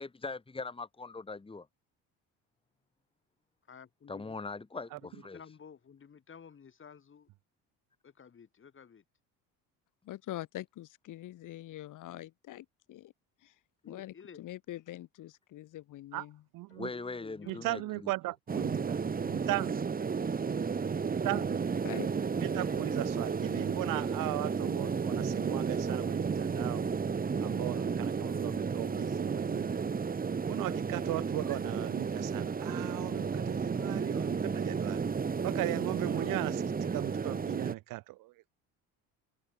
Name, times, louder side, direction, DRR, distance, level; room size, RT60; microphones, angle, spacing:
voice 1, 0.0-1.7 4.1-5.4 16.7-17.8, left 3 dB, 15° left, 2.5 m, -41 dB
voice 2, 3.7-4.4 4.9-7.3 8.0-9.0 13.8-14.4 16.7-17.9, left 7 dB, 35° left, 7.4 m, -53 dB
voice 3, 10.0-13.1 13.4-13.5 13.8-16.4 21.8-22.1, left 14 dB, 65° left, 3.2 m, -44 dB
voice 4, 16.5-16.9 17.5-19.8 21.0-21.6 22.4-26.9 27.4-29.8 30.5-35.0 35.4-38.5, right 19 dB, 70° right, 1.1 m, -37 dB
sound 1, 18.5-37.7, right 5 dB, 25° right, 1.8 m, -32 dB
cardioid pair, 100°, 33 cm